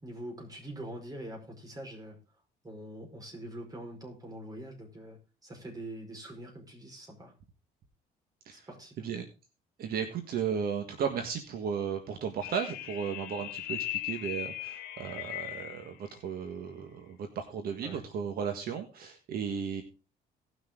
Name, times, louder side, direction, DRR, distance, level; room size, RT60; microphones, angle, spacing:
voice 1, 0.0-2.2 2.6-7.3 8.5-8.9 17.8-18.0, right 1 dB, 20° right, 2 dB, 4.9 m, -44 dB
voice 2, 9.8-19.8, right 7 dB, 65° right, 6 dB, 1.6 m, -35 dB
sound 1, 12.4-15.9, left 14 dB, 75° left, 1.7 m, -38 dB
18.0 x 6.4 x 3.7 m, 0.32 s
cardioid pair, 110°, 17 cm